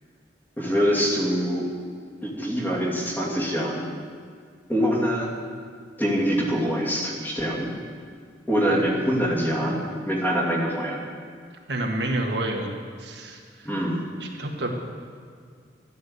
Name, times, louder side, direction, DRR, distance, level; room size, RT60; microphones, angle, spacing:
voice 1, 0.6-1.7 2.2-3.9 4.7-5.3 6.0-7.7 8.5-11.0 13.6-14.0, equal, 10° left, -3 dB, 2.5 m, -24 dB
voice 2, 11.7-12.7 13.0-13.7 14.2-14.7, right 1 dB, 65° right, 1 dB, 1.6 m, -29 dB
14.0 x 9.6 x 8.1 m, 2.1 s
head